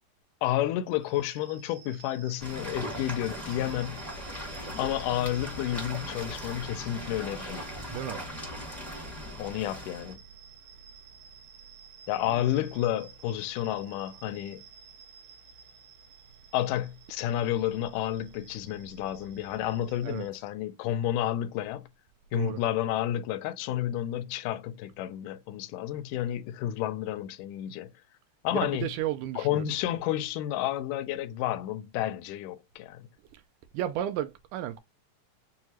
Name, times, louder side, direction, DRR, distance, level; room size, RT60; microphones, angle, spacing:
voice 1, 0.4-4.1 4.8-7.6 9.4-10.2 12.1-14.6 16.5-21.9 22.3-27.9 28.4-28.9 29.4-33.1, left 12 dB, 80° left, 1.9 m, -31 dB
sound 1, 1.0-20.3, right 5 dB, 55° right, 2.0 m, -51 dB
sound 2, 2.4-10.1, equal, ahead, 0.5 m, -39 dB
voice 2, 7.9-8.2 20.0-20.2 22.3-22.6 28.5-29.6 33.7-34.8, right 12 dB, 80° right, 1.8 m, -33 dB
6.4 x 2.2 x 2.9 m
omnidirectional pair, 4.0 m